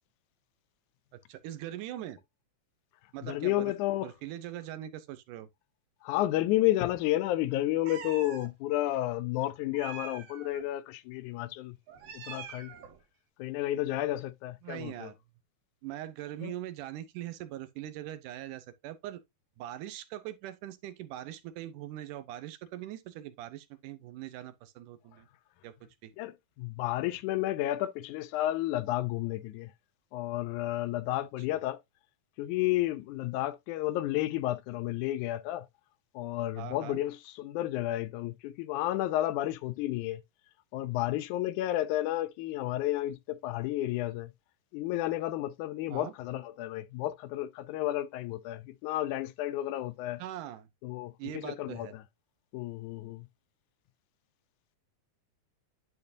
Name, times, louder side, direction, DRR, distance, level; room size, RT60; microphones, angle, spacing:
voice 1, 1.1-2.2 3.1-3.7 4.0-5.5 14.6-15.2 15.8-19.2 19.6-25.3 25.6-25.7 26.0-26.1 31.5-31.6 36.6-37.0 45.9-46.1 50.2-50.7 51.2-51.9, right 13 dB, 85° right, 2.3 m, -41 dB
voice 2, 3.2-4.1 6.0-11.8 12.1-12.7 13.4-15.1 16.4-16.5 26.2-29.7 30.1-31.8 32.4-35.7 36.1-40.2 40.7-44.3 44.7-50.2 50.8-52.0 52.5-53.3, left 15 dB, 80° left, 2.0 m, -31 dB
Meow, 7.9-8.5 9.7-10.6 11.9-13.0, right 8 dB, 60° right, 1.9 m, -45 dB
11.0 x 4.4 x 2.6 m
omnidirectional pair, 3.6 m